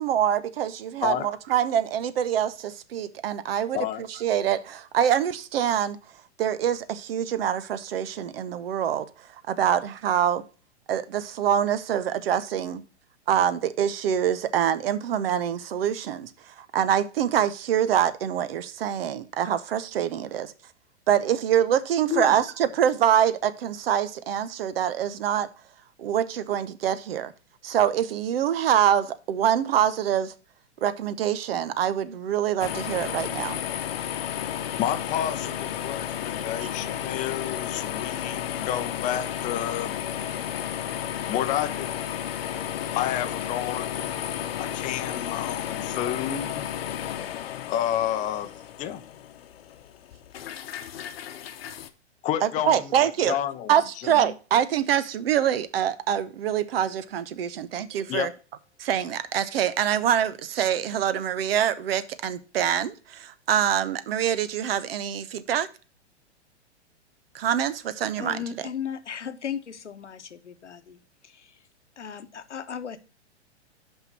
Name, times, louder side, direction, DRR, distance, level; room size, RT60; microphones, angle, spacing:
voice 1, 0.0-6.0 6.4-10.4 10.9-12.8 13.3-20.5 21.1-25.5 26.0-27.3 27.6-30.3 30.8-33.6 52.4-53.4 53.7-58.3 58.8-65.7 67.3-68.4, right 9 dB, 55° right, 0.9 m, -25 dB
sound 1, 32.6-51.9, left 10 dB, 55° left, 1.0 m, -33 dB
voice 2, 34.8-40.0 41.3-42.0 42.9-44.2 44.6-46.7 47.7-48.5 48.8-49.0 52.2-52.9 53.3-53.7 54.0-54.1 58.1-58.3, left 11 dB, 20° left, 0.6 m, -30 dB
voice 3, 68.2-71.6 72.0-73.0, left 8 dB, 85° left, 1.1 m, -36 dB
5.6 x 5.6 x 6.0 m
hypercardioid pair, 115°, 35 cm